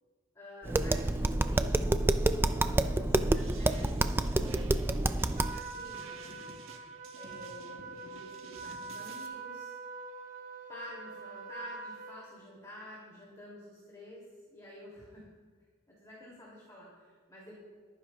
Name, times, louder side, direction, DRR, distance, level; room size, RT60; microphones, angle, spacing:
voice 1, 0.3-6.6 7.1-9.7 10.7-14.2 14.5-15.3 16.0-17.6, equal, 20° left, -6 dB, 2.8 m, -50 dB
Tap, 0.6-5.6, right 2 dB, 10° right, 0.3 m, -28 dB
sound 1, 3.3-9.3, right 3 dB, 85° right, 1.5 m, -52 dB
Trumpet, 5.4-12.3, right 4 dB, 40° right, 1.1 m, -44 dB
22.0 x 9.9 x 2.4 m, 1.5 s
head